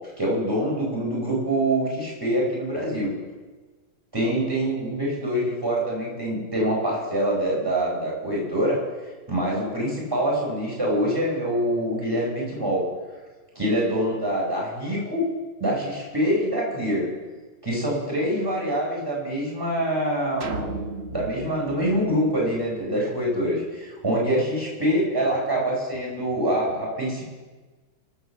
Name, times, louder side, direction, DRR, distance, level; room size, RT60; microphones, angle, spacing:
voice 1, 0.2-3.1 4.1-8.8 9.3-12.9 13.6-15.2 15.6-17.1 17.6-20.6 21.1-27.4, right 1 dB, 10° right, -3 dB, 4.9 m, -25 dB
sound 1, 20.4-22.9, right 2 dB, 40° right, 1.1 m, -35 dB
24.5 x 8.2 x 6.9 m, 1.3 s
omnidirectional pair, 2.2 m